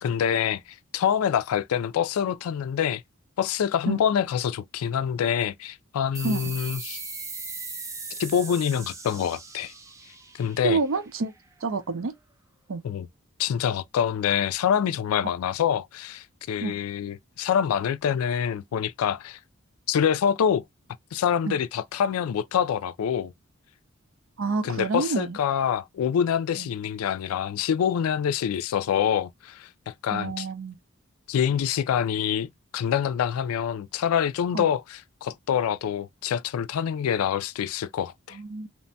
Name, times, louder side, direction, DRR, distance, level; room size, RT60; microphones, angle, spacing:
voice 1, 0.0-0.6 0.9-3.0 3.4-7.0 8.2-9.7 10.3-10.8 12.8-13.1 13.4-19.4 19.9-20.6 21.1-23.3 24.6-30.5 31.3-38.4, left 8 dB, 90° left, 0.3 m, -26 dB
sound 1, 6.1-11.3, right 4 dB, 15° right, 0.3 m, -39 dB
voice 2, 10.6-11.3 11.6-12.1 12.7-12.8 16.6-16.7 21.5-21.6 24.4-25.4 26.6-26.7 30.1-30.8 34.5-34.7 38.3-38.7, right 4 dB, 75° right, 0.5 m, -28 dB
2.9 x 2.2 x 2.6 m
head